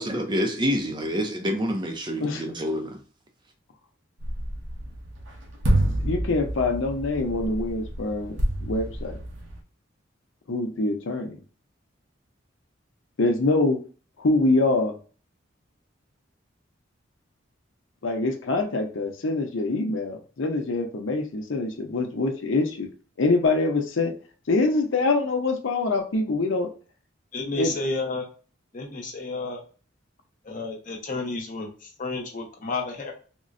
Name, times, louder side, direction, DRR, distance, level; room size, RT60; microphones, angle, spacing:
voice 1, 0.0-3.0, equal, 25° right, 0.4 m, -27 dB
sound 1, 4.2-9.6, right 1 dB, 75° right, 0.7 m, -28 dB
voice 2, 6.0-9.2 10.5-11.4 13.2-13.8 14.2-14.9 18.0-22.9 23.2-24.1 24.5-26.7 27.6-27.7, left 2 dB, 85° left, 0.6 m, -24 dB
voice 3, 27.3-28.3 28.7-29.6 30.4-33.1, left 3 dB, 40° left, 0.8 m, -31 dB
3.7 x 2.0 x 2.5 m
head